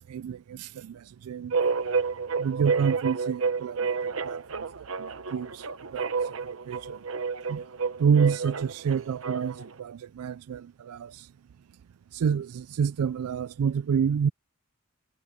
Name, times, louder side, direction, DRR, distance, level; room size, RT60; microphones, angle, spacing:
voice 1, 0.0-1.6 2.4-4.7 5.0-7.0 7.5-7.6 8.0-11.3 12.1-14.3, right 7 dB, 85° right, 0.4 m, -29 dB
sound 1, 1.5-9.7, right 5 dB, 65° right, 1.0 m, -30 dB
head